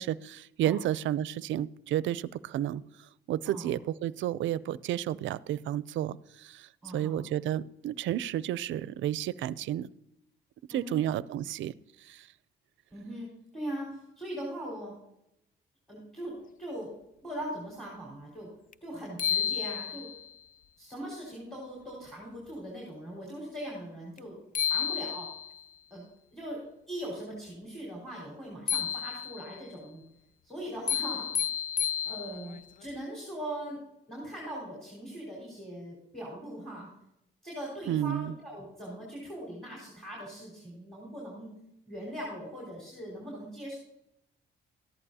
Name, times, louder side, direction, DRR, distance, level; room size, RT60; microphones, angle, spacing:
voice 1, 0.0-2.8 3.3-9.9 10.7-11.7 12.0-12.3 37.9-38.3, right 12 dB, 70° right, 19 dB, 0.4 m, -31 dB
voice 2, 6.8-7.2 10.7-11.1 12.9-14.9 15.9-16.9 17.2-18.5 18.8-20.1 20.8-24.4 24.6-25.3 25.9-26.0 26.3-30.0 30.4-31.3 32.1-33.8 34.1-36.9 37.4-41.5 41.9-43.8, right 1 dB, ahead, -4 dB, 4.8 m, -40 dB
sound 1, 18.7-18.8 19.2-20.3 24.2-24.3 24.5-25.6 28.7-29.6 30.9-32.6, left 8 dB, 45° left, 0.5 m, -31 dB
14.0 x 11.0 x 2.8 m, 0.81 s
cardioid pair, 90°, 20 cm